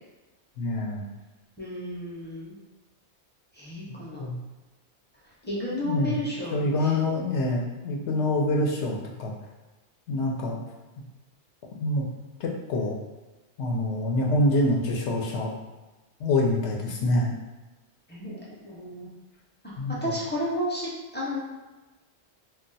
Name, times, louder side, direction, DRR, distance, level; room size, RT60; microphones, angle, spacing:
voice 1, 0.6-1.1 3.9-4.4 5.8-6.3 6.5-9.3 10.1-10.6 11.8-12.0 12.4-13.0 13.6-15.5 16.2-17.3 19.8-20.1, left 1 dB, 85° left, 0 dB, 0.9 m, -26 dB
voice 2, 1.6-2.6 3.6-4.2 5.4-7.1 18.1-19.1 20.0-21.4, equal, 15° left, -6 dB, 0.5 m, -32 dB
2.3 x 2.2 x 3.9 m, 1.1 s
omnidirectional pair, 1.1 m